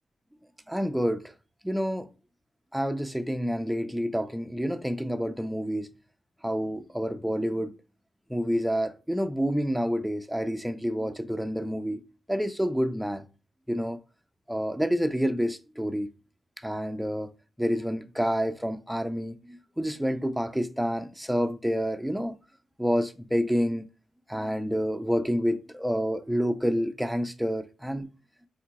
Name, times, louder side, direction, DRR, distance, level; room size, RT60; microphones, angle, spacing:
voice 1, 0.7-1.2 1.6-2.1 2.7-5.9 6.4-7.7 8.3-12.0 12.3-13.2 13.7-14.0 14.5-16.1 16.6-17.3 17.6-22.4 22.8-23.8 24.3-28.1, equal, 5° right, 0.5 m, -28 dB
3.7 x 2.3 x 2.8 m
supercardioid pair, 50°, 0 cm